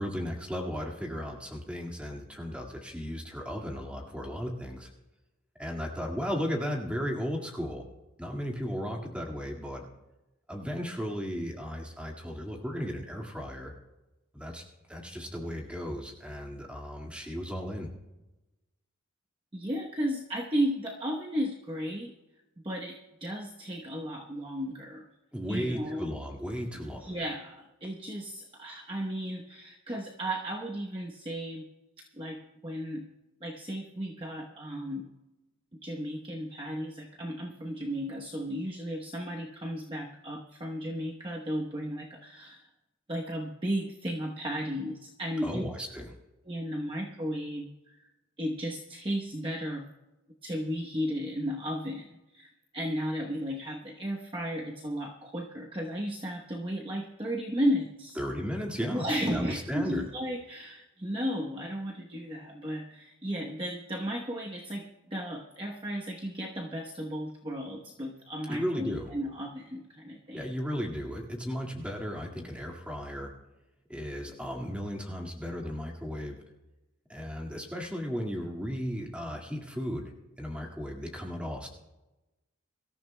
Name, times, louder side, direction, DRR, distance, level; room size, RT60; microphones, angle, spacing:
voice 1, 0.0-4.9 5.6-7.8 8.2-9.9 10.5-13.7 14.3-14.6 14.9-17.9 25.3-27.1 45.4-46.2 58.2-59.1 59.3-60.1 68.5-69.1 70.3-73.3 73.9-76.4 77.1-80.1 80.4-81.7, equal, 5° right, 0 dB, 1.9 m, -35 dB
voice 2, 19.5-22.1 22.6-25.1 25.5-26.1 26.7-31.7 32.0-33.1 33.4-35.1 35.8-42.7 43.1-45.6 46.5-48.0 48.4-49.9 50.4-58.2 58.9-70.5, equal, 25° right, -1 dB, 0.9 m, -34 dB
24.0 x 13.5 x 2.2 m, 1.0 s
head